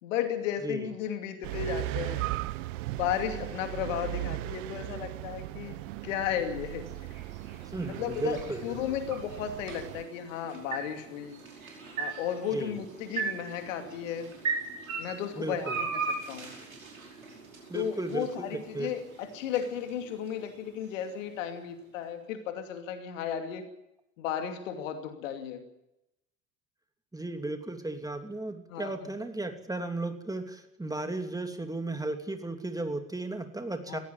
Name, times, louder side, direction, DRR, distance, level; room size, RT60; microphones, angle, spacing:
voice 1, 0.0-2.3 2.9-5.8 6.0-6.9 7.8-8.4 8.6-11.4 12.0-14.3 15.0-16.5 17.7-23.7 24.2-25.6 28.7-29.1 33.9-34.0, left 9 dB, 70° left, 7 dB, 2.7 m, -34 dB
sound 1, 1.4-10.0, right 17 dB, 65° right, 1.0 m, -37 dB
sound 2, 5.7-21.8, right 5 dB, 85° right, 5.3 m, -40 dB
voice 2, 7.7-8.8 12.5-12.7 15.4-15.8 17.7-18.9 27.1-34.0, right 2 dB, 10° right, 6 dB, 2.9 m, -35 dB
19.0 x 16.5 x 9.1 m, 0.86 s
figure-of-eight pair, 65°, 40 cm